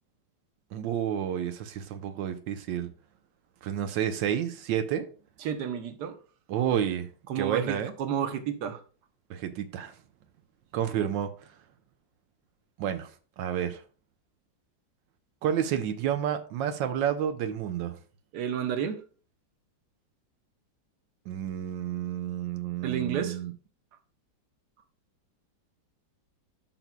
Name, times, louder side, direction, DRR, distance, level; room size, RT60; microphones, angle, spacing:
voice 1, 0.7-2.9 3.6-5.1 6.5-7.1 7.3-7.9 9.3-9.9 10.7-11.3 12.8-13.1 13.4-13.8 15.4-17.9 21.3-23.5, right 9 dB, 90° right, 1.4 m, -30 dB
voice 2, 5.4-6.1 7.3-8.8 18.3-19.0 22.8-23.4, right 8 dB, 65° right, 1.5 m, -31 dB
13.0 x 6.0 x 2.2 m
omnidirectional pair, 2.0 m